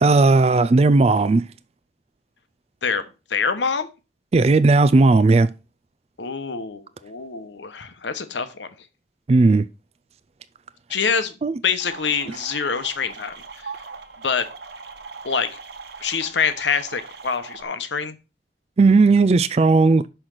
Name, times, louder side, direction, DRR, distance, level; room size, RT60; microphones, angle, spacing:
voice 1, 0.0-1.4 4.3-5.5 9.3-9.6 11.4-11.6 18.8-20.1, right 3 dB, 35° right, 0.3 m, -15 dB
voice 2, 3.3-3.9 6.2-8.7 10.9-11.3 11.6-13.3 13.6-13.7 14.2-14.5 15.2-15.5 16.0-18.2, left 6 dB, 85° left, 1.1 m, -25 dB
sound 1, 11.8-17.6, right 4 dB, 70° right, 1.2 m, -40 dB
6.0 x 5.8 x 6.6 m
head